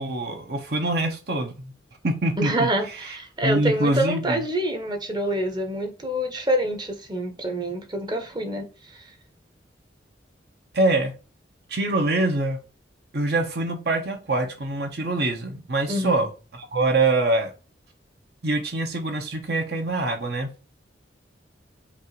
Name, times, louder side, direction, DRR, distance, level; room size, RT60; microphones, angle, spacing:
voice 1, 0.0-1.7 2.0-3.0 3.4-4.4 10.7-11.1 11.7-12.6 13.1-17.5 18.4-20.5, right 2 dB, 60° right, 1.0 m, -24 dB
voice 2, 2.4-8.7 15.9-16.1, right 1 dB, 25° right, 0.8 m, -26 dB
5.2 x 2.6 x 3.1 m
head